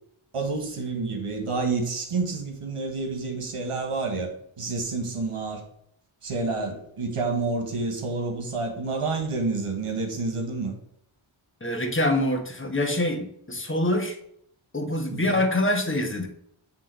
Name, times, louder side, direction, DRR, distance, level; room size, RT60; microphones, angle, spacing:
voice 1, 0.3-5.6 6.2-10.7 15.1-15.4, right 3 dB, 85° right, 3 dB, 1.7 m, -29 dB
voice 2, 11.6-14.2 14.7-16.3, left 1 dB, 25° left, 4 dB, 1.4 m, -25 dB
7.8 x 3.6 x 4.9 m, 0.69 s
wide cardioid pair, 60°, 50 cm